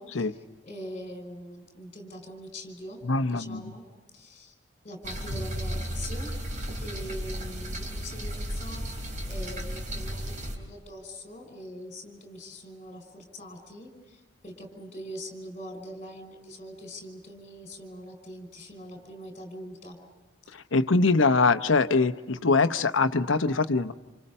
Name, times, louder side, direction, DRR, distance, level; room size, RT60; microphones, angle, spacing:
voice 1, 0.0-3.0 3.3-3.8 4.1-4.5 4.8-6.3 6.8-20.0, equal, 35° left, 5 dB, 5.5 m, -43 dB
voice 2, 3.0-3.6 20.7-23.9, left 3 dB, 90° left, 10 dB, 0.9 m, -23 dB
sound 1, 5.0-10.6, equal, 40° right, 3.7 m, -34 dB
29.5 x 28.0 x 5.5 m, 1.2 s
head